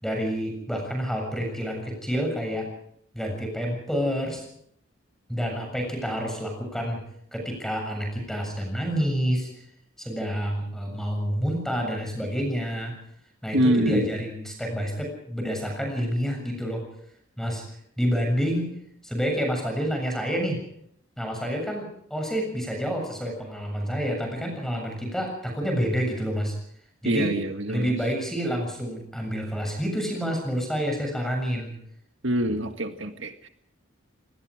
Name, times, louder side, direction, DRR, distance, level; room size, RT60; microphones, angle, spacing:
voice 1, 0.0-2.7 3.1-4.4 5.3-7.0 7.3-9.5 10.0-12.9 13.4-16.8 17.4-17.6 18.0-18.7 19.0-20.6 21.2-26.6 27.0-27.3 27.7-31.7, equal, ahead, 2 dB, 7.2 m, -28 dB
voice 2, 13.5-14.1 27.0-27.9 32.2-33.5, right 1 dB, 65° right, 6 dB, 1.8 m, -25 dB
27.0 x 19.5 x 5.0 m, 0.69 s
head